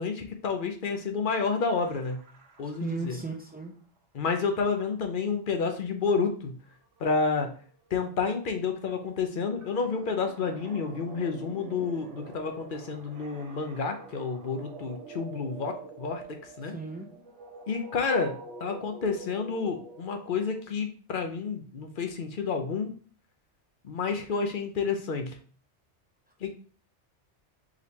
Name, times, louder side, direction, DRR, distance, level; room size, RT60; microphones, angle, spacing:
voice 1, 0.0-2.2 2.6-3.2 4.1-6.6 7.0-7.5 7.9-16.2 16.6-16.7 17.7-22.9 23.8-25.4 26.4-26.5, left 5 dB, 50° left, 5 dB, 0.8 m, -30 dB
sound 1, 1.7-3.7 6.7-6.8 7.0-20.6, right 3 dB, 80° right, 1.2 m, -47 dB
voice 2, 2.8-3.8 16.7-17.1, right 4 dB, 10° right, 1 dB, 0.4 m, -35 dB
5.0 x 3.3 x 2.8 m, 0.43 s
omnidirectional pair, 1.2 m